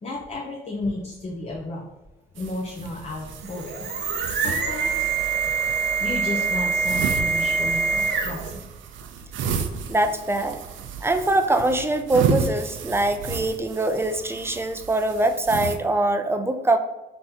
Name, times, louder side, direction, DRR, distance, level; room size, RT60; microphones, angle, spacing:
voice 1, 0.0-1.8 2.3-3.9 4.3-5.1 6.0-8.6, left 2 dB, 35° left, -4 dB, 0.8 m, -33 dB
sound 1, 2.4-15.8, right 6 dB, 80° right, 0.5 m, -32 dB
sound 2, 3.3-8.6, right 5 dB, 55° right, 0.8 m, -25 dB
voice 2, 9.9-10.6 11.0-16.8, right 2 dB, 10° right, 8 dB, 0.4 m, -23 dB
4.1 x 2.8 x 3.6 m, 1.0 s
cardioid pair, 90°, 20 cm